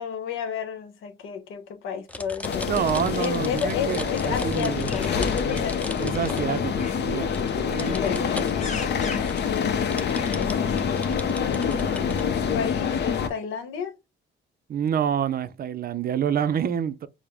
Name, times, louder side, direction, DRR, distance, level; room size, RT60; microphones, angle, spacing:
voice 1, 0.0-2.7 3.2-6.0 7.8-8.7 9.0-10.3 11.0-14.0, left 7 dB, 85° left, 0.9 m, -33 dB
sound 1, 2.1-7.0 7.3-8.6 8.9-9.0 9.3-12.2, left 1 dB, 5° left, 0.5 m, -38 dB
sound 2, 2.4-13.3, left 6 dB, 60° left, 0.7 m, -26 dB
voice 2, 2.7-5.0 6.0-7.3 7.6-8.2 14.7-17.1, right 8 dB, 50° right, 0.5 m, -27 dB
sound 3, 4.1-11.1, left 4 dB, 35° left, 0.9 m, -43 dB
4.8 x 2.0 x 3.4 m
cardioid pair, 90°, 20 cm